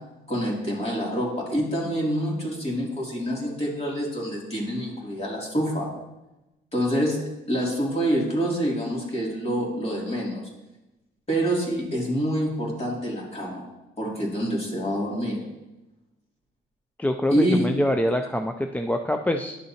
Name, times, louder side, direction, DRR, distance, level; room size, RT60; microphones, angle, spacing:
voice 1, 0.3-5.9 6.7-7.2 7.5-10.5 11.3-13.7 14.0-15.4 17.3-17.7, equal, 30° left, -3 dB, 2.8 m, -26 dB
voice 2, 17.0-19.6, left 1 dB, 10° left, 6 dB, 0.4 m, -25 dB
10.5 x 6.6 x 2.9 m, 1.0 s
cardioid pair, 90°, 20 cm